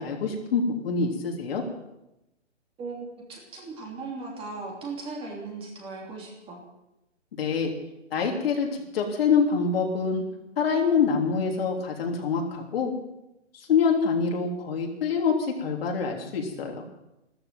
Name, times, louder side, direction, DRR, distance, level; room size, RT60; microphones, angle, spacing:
voice 1, 0.0-1.6 7.4-7.7 8.1-10.2 10.6-12.9 13.5-16.8, left 5 dB, 55° left, 1 dB, 3.5 m, -25 dB
voice 2, 3.3-6.6, right 3 dB, 15° right, -1 dB, 3.1 m, -37 dB
14.0 x 14.0 x 7.6 m, 0.91 s
hypercardioid pair, 145°, 36 cm